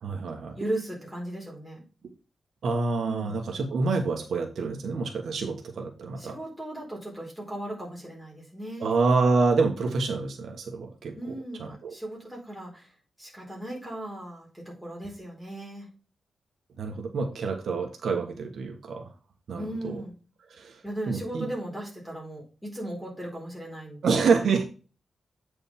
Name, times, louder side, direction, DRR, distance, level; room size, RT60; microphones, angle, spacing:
voice 1, 0.0-0.6 2.6-6.3 8.8-11.3 11.6-11.9 16.8-19.1 19.5-20.0 20.5-21.5 24.0-24.6, right 4 dB, 70° right, 3 dB, 1.5 m, -27 dB
voice 2, 0.6-1.8 3.0-3.4 6.2-9.0 11.1-12.9 13.2-15.9 19.5-20.1 20.8-24.0, right 1 dB, ahead, -4 dB, 4.2 m, -37 dB
8.4 x 5.2 x 3.7 m, 0.34 s
wide cardioid pair, 165°, 0 cm